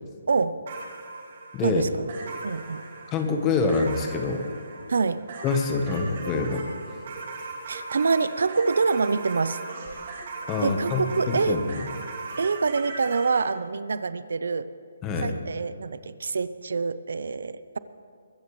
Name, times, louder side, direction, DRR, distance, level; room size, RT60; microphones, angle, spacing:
voice 1, 0.3-0.6 1.6-2.1 2.4-2.8 4.9-5.3 7.7-9.6 10.6-11.6 12.4-14.7 15.2-17.8, right 4 dB, 70° right, 15 dB, 0.7 m, -26 dB
sound 1, 0.7-13.5, right 3 dB, 40° right, 2.6 m, -39 dB
voice 2, 3.1-4.4 5.4-6.6 10.5-11.6 15.0-15.3, left 4 dB, 15° left, 5 dB, 1.1 m, -25 dB
23.0 x 14.0 x 3.2 m, 2.4 s
hypercardioid pair, 170°, 0 cm